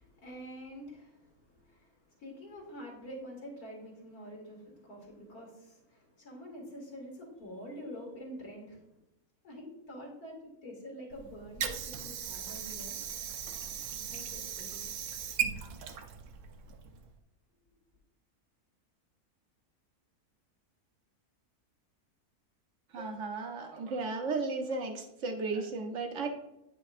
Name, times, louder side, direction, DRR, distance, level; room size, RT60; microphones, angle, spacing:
voice 1, 0.0-8.8 9.4-13.0 14.1-14.8, equal, 85° left, -2 dB, 2.7 m, -47 dB
Water / Sink (filling or washing), 11.1-17.1, right 8 dB, 85° right, 1.2 m, -38 dB
voice 2, 22.9-26.3, right 3 dB, 60° right, 4 dB, 1.0 m, -34 dB
9.2 x 6.1 x 2.5 m, 0.90 s
omnidirectional pair, 1.6 m